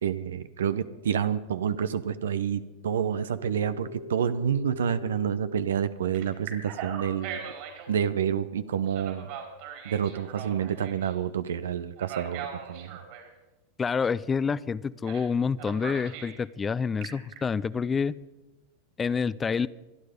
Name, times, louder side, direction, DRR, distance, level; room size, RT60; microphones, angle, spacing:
voice 1, 0.0-7.4 7.9-9.3 9.8-13.0, right 8 dB, 80° right, 13 dB, 0.7 m, -28 dB
Telephone, 3.3-5.6 6.1-7.9 8.9-11.1 12.0-13.3 15.0-15.3 15.6-16.4 16.8-17.4, right 5 dB, 60° right, 4.6 m, -40 dB
voice 2, 13.8-18.1 19.0-19.7, left 5 dB, 20° left, 18 dB, 0.5 m, -28 dB
25.0 x 9.5 x 5.1 m, 1.1 s
hypercardioid pair, 100°, 0 cm